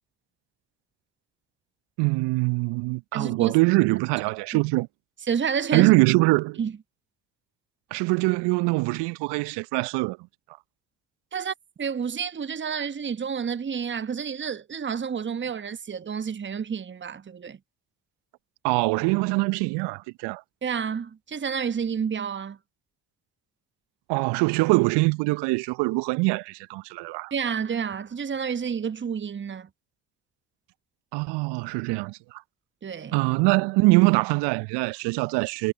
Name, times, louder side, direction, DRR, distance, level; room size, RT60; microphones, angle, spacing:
voice 1, 2.0-4.9 5.7-6.6 7.9-10.2 18.6-20.4 24.1-27.3 31.1-32.4 33.1-35.7, right 25 dB, 65° right, 1.0 m, -23 dB
voice 2, 3.1-3.6 4.5-4.6 5.3-5.9 6.6-6.7 11.3-17.6 20.6-22.6 27.3-29.7 32.8-33.2, right 7 dB, 25° right, 1.1 m, -29 dB
hypercardioid pair, 50°, 44 cm